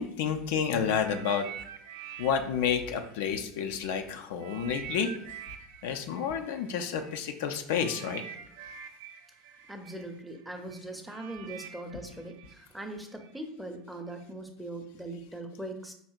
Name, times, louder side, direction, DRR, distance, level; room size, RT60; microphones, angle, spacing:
voice 1, 0.0-1.5 2.2-5.1 5.8-8.2, left 7 dB, 60° left, 6 dB, 0.3 m, -30 dB
sound 1, 1.0-3.9 4.4-13.4 14.1-14.2, right 9 dB, 55° right, 0.3 m, -46 dB
voice 2, 9.7-15.9, right 1 dB, 5° right, 4 dB, 0.6 m, -41 dB
5.2 x 2.7 x 2.4 m, 0.71 s
figure-of-eight pair, 70°, 0 cm